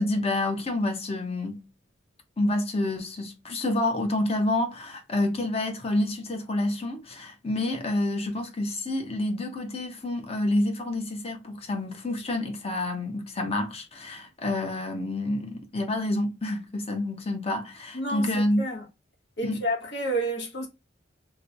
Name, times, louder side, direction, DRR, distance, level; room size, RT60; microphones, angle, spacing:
voice 1, 0.0-1.6 2.4-18.6 19.4-19.6, left 1 dB, 35° left, 0.8 m, -28 dB
voice 2, 17.9-18.8 19.4-20.7, right 1 dB, 65° left, 1.1 m, -30 dB
3.1 x 2.2 x 3.9 m
head